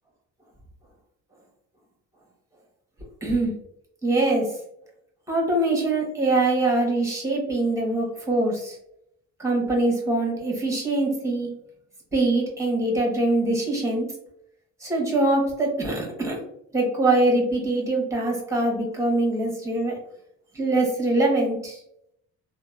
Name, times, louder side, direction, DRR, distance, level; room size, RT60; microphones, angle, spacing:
voice 1, 3.2-3.5 4.0-4.5 5.3-8.8 9.4-11.5 12.1-14.0 14.8-16.4 16.7-19.9 20.5-21.8, right 2 dB, 10° right, -1 dB, 1.1 m, -23 dB
2.9 x 2.2 x 2.4 m, 0.75 s
cardioid pair, 90°, 30 cm